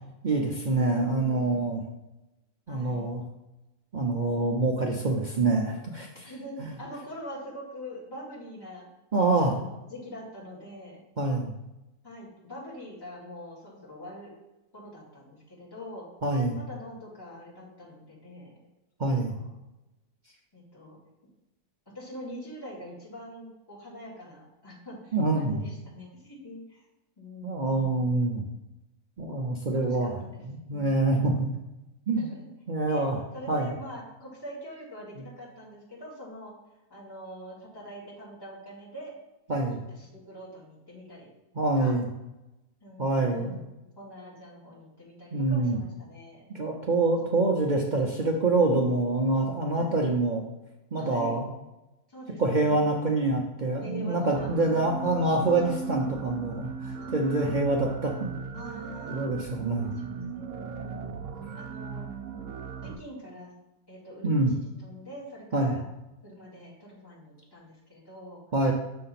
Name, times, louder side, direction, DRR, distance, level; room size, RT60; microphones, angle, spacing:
voice 1, 0.2-1.8 2.7-3.2 3.9-6.3 6.6-6.7 9.1-9.5 11.2-11.5 16.2-16.6 19.0-19.3 25.1-25.6 27.4-28.4 29.2-30.1 30.4-31.5 32.1-32.3 32.7-33.2 33.5-33.7 39.5-39.8 41.6-42.1 43.0-43.6 45.3-45.8 46.5-50.4 50.9-51.5 52.4-58.4 59.1-59.9 64.2-64.5 65.5-65.8 68.5-68.7, right 2 dB, 50° right, 0 dB, 0.5 m, -26 dB
voice 2, 0.8-1.7 2.7-3.1 6.2-8.9 9.5-11.0 12.0-14.3 14.7-16.1 16.6-18.5 19.0-19.5 20.5-21.0 21.9-26.8 27.2-28.2 29.7-30.4 32.2-32.5 32.9-33.1 33.3-36.5 36.9-39.1 39.7-41.3 41.8-42.0 42.8-43.6 44.0-46.4 47.9-48.2 49.7-50.0 51.0-51.4 52.1-52.9 53.8-55.1 55.5-55.7 57.0-57.2 58.5-59.2 59.8-61.1 61.5-62.1 62.8-63.5 63.9-65.8 66.2-68.4, equal, 15° left, -8 dB, 2.4 m, -44 dB
sound 1, 54.4-63.0, right 5 dB, 65° right, 0.9 m, -38 dB
6.6 x 3.3 x 5.7 m, 0.96 s
omnidirectional pair, 1.5 m